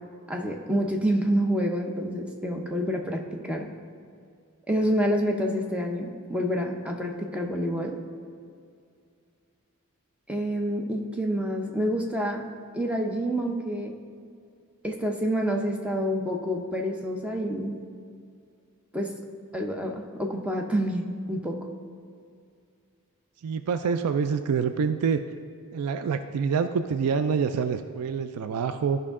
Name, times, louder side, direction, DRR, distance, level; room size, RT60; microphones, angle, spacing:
voice 1, 0.3-3.7 4.7-8.0 10.3-12.5 12.7-13.9 14.8-17.8 18.9-19.1 19.5-21.6, equal, 5° right, 1 dB, 0.7 m, -28 dB
voice 2, 23.4-25.2 25.7-29.0, right 6 dB, 85° right, 10 dB, 0.4 m, -26 dB
13.5 x 5.5 x 3.6 m, 2.3 s
head